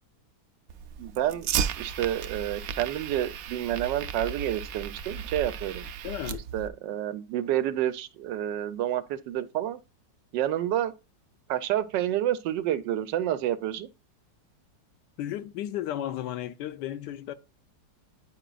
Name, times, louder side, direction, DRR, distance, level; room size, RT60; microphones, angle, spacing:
Fire, 0.7-6.7, right 7 dB, 70° right, 0.8 m, -34 dB
voice 1, 1.0-1.5 1.8-5.8 6.5-9.8 10.3-10.9 11.5-13.9, right 12 dB, 85° right, 1.3 m, -29 dB
voice 2, 6.0-6.4 15.2-17.3, left 12 dB, 75° left, 1.2 m, -34 dB
9.5 x 5.0 x 2.3 m
omnidirectional pair, 1.9 m